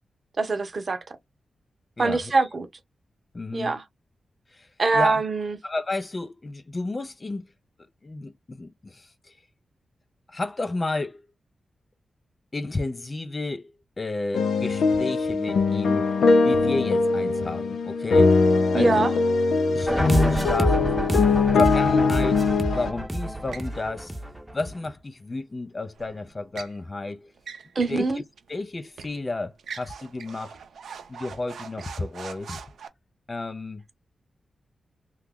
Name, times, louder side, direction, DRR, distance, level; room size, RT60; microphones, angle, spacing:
voice 1, 0.4-1.0 2.0-2.7 3.5-3.8 4.8-5.6 18.7-19.1 27.7-28.2, right 3 dB, 45° right, 0.8 m, -23 dB
voice 2, 2.0-2.5 3.3-3.8 4.5-5.2 5.6-7.5 7.8-9.4 10.3-11.2 12.5-13.7 14.0-16.1 16.4-18.4 18.7-19.1 19.7-20.8 21.5-22.4 22.7-24.1 24.5-27.3 27.9-28.2 28.5-30.6 31.1-32.6 33.3-33.8, left 2 dB, 30° left, 0.4 m, -32 dB
sound 1, 14.3-22.9, left 4 dB, 85° left, 0.4 m, -21 dB
sound 2, 19.9-24.9, right 1 dB, 10° right, 0.7 m, -26 dB
sound 3, 23.5-23.7 25.9-26.8 27.4-28.0 28.4-28.5 29.0-29.2 29.6-32.9, right 6 dB, 90° right, 0.5 m, -41 dB
2.8 x 2.3 x 3.5 m
cardioid pair, 90°, 0 cm